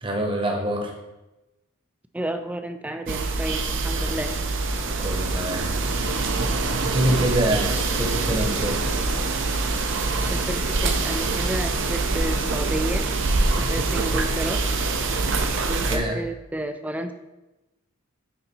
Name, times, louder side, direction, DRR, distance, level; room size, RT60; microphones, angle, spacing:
voice 1, 0.0-0.9 4.0-4.2 5.0-5.6 6.7-8.8 15.9-16.2, right 1 dB, 20° right, 1 dB, 1.0 m, -25 dB
voice 2, 2.1-4.4 10.3-13.0 13.7-14.6 15.7-17.1, right 1 dB, 5° right, 8 dB, 0.3 m, -31 dB
sound 1, 3.1-16.0, right 3 dB, 55° right, 0.7 m, -24 dB
9.0 x 4.0 x 4.3 m, 1.0 s
head